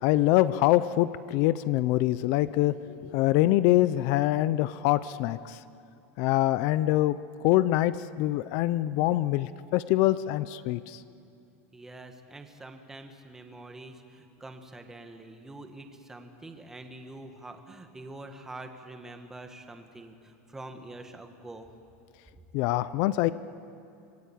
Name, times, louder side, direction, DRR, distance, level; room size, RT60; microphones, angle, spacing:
voice 1, 0.0-5.6 6.2-7.2 7.4-11.0 22.5-23.3, left 15 dB, 40° left, 15 dB, 0.5 m, -24 dB
voice 2, 11.7-21.7, right 2 dB, 5° right, 6 dB, 1.4 m, -45 dB
26.0 x 22.0 x 8.6 m, 2.5 s
supercardioid pair, 170°, 8 cm